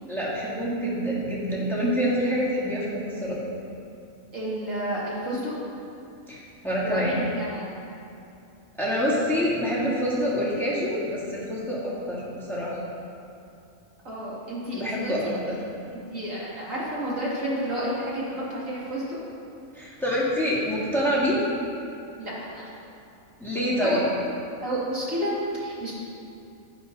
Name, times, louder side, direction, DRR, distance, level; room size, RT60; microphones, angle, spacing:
voice 1, 0.1-3.4 6.3-7.2 8.7-12.8 14.7-15.6 19.7-21.4 23.4-24.1, equal, ahead, -7 dB, 2.1 m, -26 dB
voice 2, 4.3-5.5 6.8-7.7 14.0-15.1 15.9-19.0 22.2-22.7 23.8-24.0 24.6-25.9, right 1 dB, 65° right, -8 dB, 3.1 m, -30 dB
11.5 x 10.5 x 4.1 m, 2.7 s
omnidirectional pair, 1.5 m